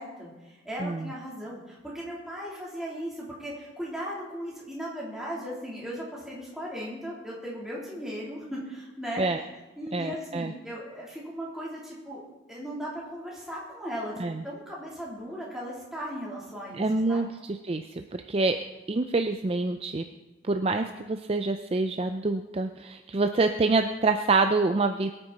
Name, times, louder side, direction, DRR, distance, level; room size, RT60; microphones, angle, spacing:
voice 1, 0.0-9.3 9.8-12.2 12.5-17.3, equal, ahead, -6 dB, 3.5 m, -37 dB
voice 2, 0.8-1.1 9.2-9.4 9.9-10.5 14.2-14.4 16.8-18.6 18.9-20.0 20.5-25.1, right 3 dB, 30° right, 7 dB, 0.4 m, -26 dB
22.0 x 8.9 x 4.2 m, 1.1 s
head